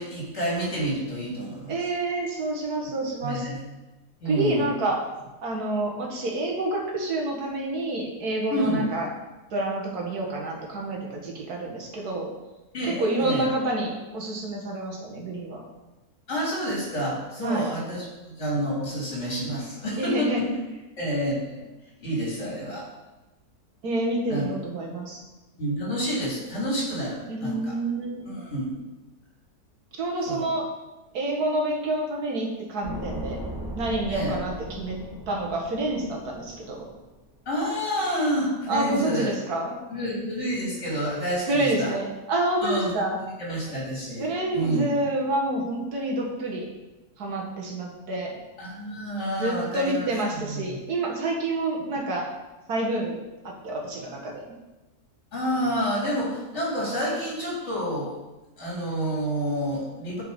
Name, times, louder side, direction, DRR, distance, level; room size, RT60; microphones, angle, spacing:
voice 1, 0.0-1.7 3.2-3.6 4.2-4.7 8.5-8.8 12.7-13.5 16.3-20.5 21.0-21.6 22.0-22.8 24.3-24.5 25.6-27.7 28.3-28.7 30.3-30.5 34.1-34.3 37.5-39.4 39.9-41.9 42.6-42.9 43.2-45.0 48.6-50.0 50.4-50.8 55.3-58.1 58.6-60.2, equal, 45° left, -6 dB, 3.8 m, -29 dB
voice 2, 1.7-3.5 4.3-5.0 5.4-9.1 9.5-12.3 12.8-15.6 17.4-17.7 20.0-20.4 23.8-25.2 27.3-28.3 30.0-30.7 31.1-33.4 33.8-35.0 35.3-36.9 38.7-39.8 41.5-43.2 44.2-46.7 47.2-48.4 49.4-52.3 52.7-53.2 53.4-54.5, right 2 dB, 75° right, -1 dB, 2.1 m, -28 dB
sound 1, 32.8-37.1 37.4-37.5, equal, 15° right, 1.1 m, -37 dB
7.9 x 5.9 x 5.3 m, 1.1 s
omnidirectional pair, 1.7 m